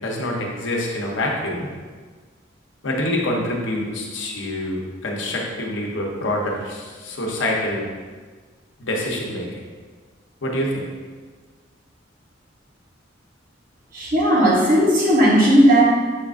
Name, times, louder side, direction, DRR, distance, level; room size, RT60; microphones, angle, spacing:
voice 1, 0.0-1.7 2.8-7.9 8.8-9.5 10.4-10.8, left 1 dB, 75° left, -1 dB, 0.9 m, -26 dB
voice 2, 13.9-15.8, equal, 50° right, -4 dB, 1.1 m, -15 dB
5.9 x 3.5 x 2.5 m, 1.5 s
head